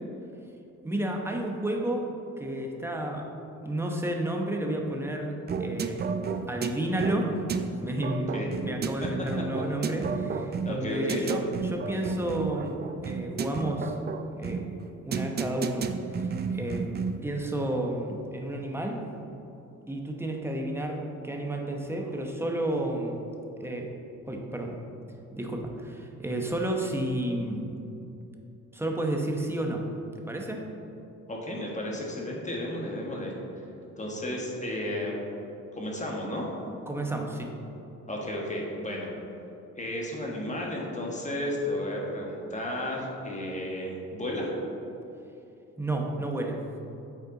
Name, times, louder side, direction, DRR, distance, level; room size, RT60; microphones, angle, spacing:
voice 1, 0.8-2.1 2.4-3.3 3.6-5.3 5.6-6.0 6.5-7.3 7.8-12.8 13.0-13.9 14.4-14.6 15.0-19.0 19.9-23.2 23.6-23.9 24.3-24.8 25.4-27.6 28.7-29.8 30.3-30.6 36.9-37.5 45.8-46.6, right 1 dB, 10° right, 1 dB, 0.9 m, -31 dB
sound 1, 5.5-17.3, right 5 dB, 35° right, 0.4 m, -32 dB
voice 2, 10.6-11.2 31.3-33.3 34.0-35.2 35.7-36.4 38.1-39.1 39.8-44.5, left 1 dB, 25° left, -2 dB, 1.5 m, -33 dB
8.2 x 4.3 x 3.9 m, 2.8 s
cardioid pair, 90°, 30 cm